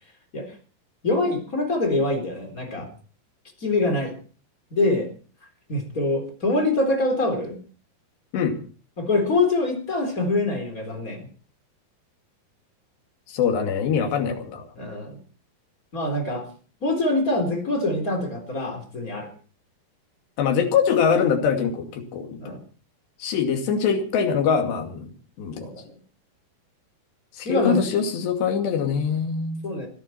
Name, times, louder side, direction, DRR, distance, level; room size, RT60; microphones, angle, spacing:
voice 1, 1.0-2.9 3.6-4.1 4.7-5.1 5.7-7.6 9.0-11.3 14.8-15.2 15.9-16.5 16.8-19.3 22.4-22.6 25.6-26.0 27.4-27.9 29.6-29.9, left 2 dB, 20° left, 4 dB, 3.8 m, -24 dB
voice 2, 13.3-14.7 20.4-22.6 23.2-25.1 25.4-25.7 27.3-29.6, left 6 dB, 80° left, 4 dB, 4.5 m, -23 dB
22.5 x 14.0 x 4.3 m, 0.40 s
omnidirectional pair, 4.9 m